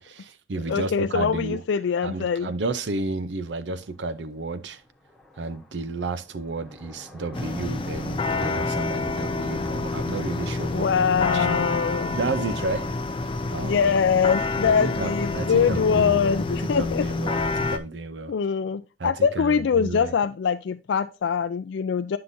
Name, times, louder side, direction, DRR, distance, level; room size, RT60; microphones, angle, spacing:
voice 1, 0.0-1.6 2.0-4.8 5.4-10.9 11.3-11.6 12.1-12.9 13.2-14.3 14.6-18.3 19.0-20.1, right 3 dB, 80° right, 0.6 m, -32 dB
voice 2, 0.7-2.5 10.7-12.2 13.6-17.1 18.3-22.2, left 6 dB, 90° left, 0.4 m, -23 dB
sound 1, 3.8-17.7, left 1 dB, ahead, 1.1 m, -45 dB
sound 2, 7.3-17.8, left 3 dB, 30° left, 0.5 m, -28 dB
9.6 x 5.7 x 2.6 m
head